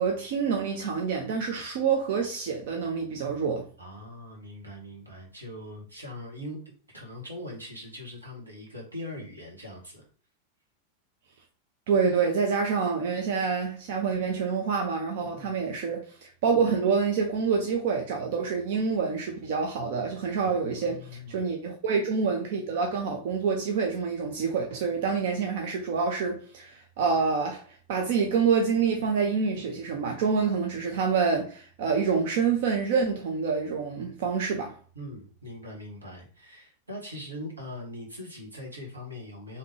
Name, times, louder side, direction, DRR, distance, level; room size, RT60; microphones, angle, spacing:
voice 1, 0.0-3.7 11.9-34.7, right 5 dB, 55° right, 0.6 m, -27 dB
voice 2, 3.8-10.1 15.3-15.6 20.4-21.4 34.9-39.6, left 1 dB, 80° right, 1.3 m, -41 dB
3.6 x 2.8 x 3.2 m
figure-of-eight pair, 90°, 0 cm